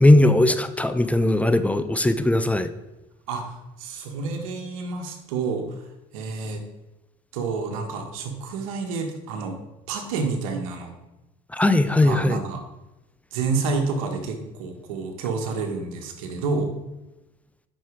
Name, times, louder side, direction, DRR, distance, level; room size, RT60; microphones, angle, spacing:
voice 1, 0.0-2.7 11.5-12.4, left 1 dB, 10° left, 11 dB, 0.6 m, -19 dB
voice 2, 3.3-5.8 6.1-6.6 7.3-9.6 9.9-10.9 12.0-12.6 13.3-16.7, right 4 dB, 85° right, 4 dB, 1.7 m, -29 dB
9.2 x 6.4 x 4.8 m, 0.99 s
supercardioid pair, 95°, 17 cm